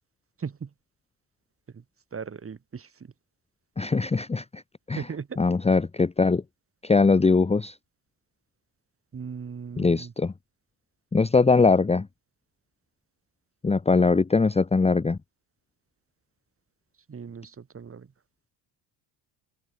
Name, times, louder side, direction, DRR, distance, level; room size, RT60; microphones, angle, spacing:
voice 1, 0.4-0.7 1.7-1.8 2.1-2.9 5.0-5.4 9.1-10.1 17.1-18.1, right 6 dB, 30° right, 7.8 m, -37 dB
voice 2, 3.8-4.6 4.9-5.1 5.4-6.4 6.8-7.8 9.8-10.3 11.1-12.1 13.6-15.2, left 4 dB, 15° left, 1.2 m, -21 dB
open air
cardioid pair, 135°, 46 cm